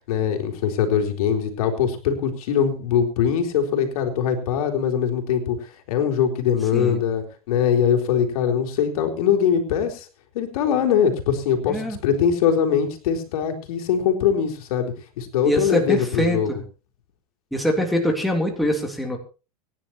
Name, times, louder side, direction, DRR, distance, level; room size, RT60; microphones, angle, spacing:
voice 1, 0.1-10.1 10.3-16.5, left 8 dB, 75° left, 4 dB, 3.9 m, -22 dB
voice 2, 11.7-12.0 15.4-16.6 17.5-19.2, equal, ahead, 0 dB, 3.4 m, -23 dB
25.0 x 10.5 x 3.0 m, 0.33 s
supercardioid pair, 135°, 19 cm